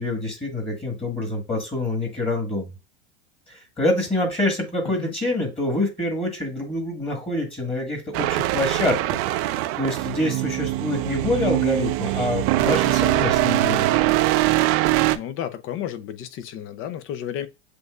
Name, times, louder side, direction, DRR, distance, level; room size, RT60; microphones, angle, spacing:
voice 1, 0.0-2.7 3.5-9.0 9.5-13.9, left 1 dB, 15° left, 1.6 m, -26 dB
sound 1, 8.1-15.2, right 16 dB, 45° right, 0.5 m, -22 dB
voice 2, 15.1-17.5, left 10 dB, 40° left, 0.6 m, -32 dB
7.7 x 2.6 x 2.4 m
hypercardioid pair, 90°, 34 cm